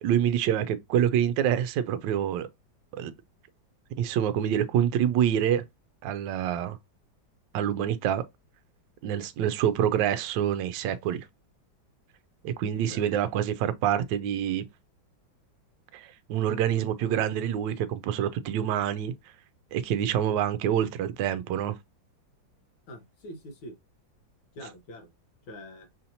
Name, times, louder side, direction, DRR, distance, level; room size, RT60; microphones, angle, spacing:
voice 1, 0.0-2.5 2.9-3.1 4.0-5.6 6.0-6.8 7.5-8.2 9.0-11.3 12.4-14.7 15.9-19.1 19.7-21.8, right 10 dB, 75° right, 1.2 m, -26 dB
voice 2, 12.7-13.1 22.9-23.8 24.6-25.1 25.5-25.9, equal, 85° left, 1.8 m, -44 dB
5.6 x 2.8 x 2.7 m
omnidirectional pair, 2.1 m